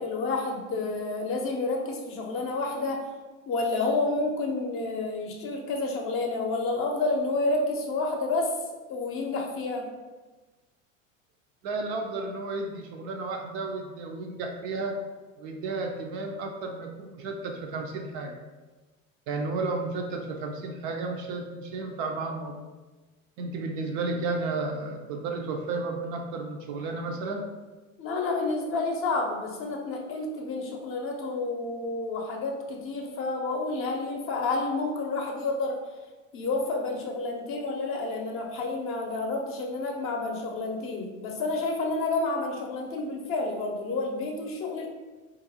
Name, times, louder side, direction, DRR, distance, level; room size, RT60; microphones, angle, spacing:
voice 1, 0.0-3.0 3.5-8.6 8.9-9.9 28.0-35.8 36.3-44.9, left 3 dB, 35° left, 1 dB, 0.7 m, -29 dB
voice 2, 11.6-15.0 15.4-18.4 19.3-22.7 23.4-27.4, right 3 dB, 45° right, 3 dB, 0.5 m, -33 dB
3.8 x 2.5 x 2.8 m, 1.2 s
hypercardioid pair, 80°, 39 cm